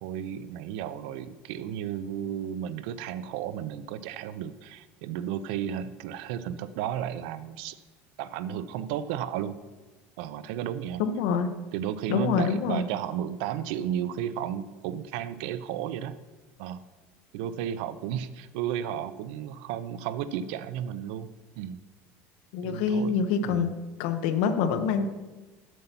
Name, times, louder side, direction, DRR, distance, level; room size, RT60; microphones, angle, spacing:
voice 1, 0.0-7.8 8.2-9.6 10.2-11.0 11.7-16.2 16.6-16.8 17.3-21.3 21.6-21.8 22.6-23.7, right 10 dB, 80° right, 14 dB, 0.5 m, -33 dB
voice 2, 11.0-11.5 12.1-12.8 22.5-23.7 24.0-25.1, left 6 dB, 85° left, 9 dB, 0.8 m, -26 dB
7.6 x 6.8 x 5.8 m, 1.2 s
cardioid pair, 175°, 5 cm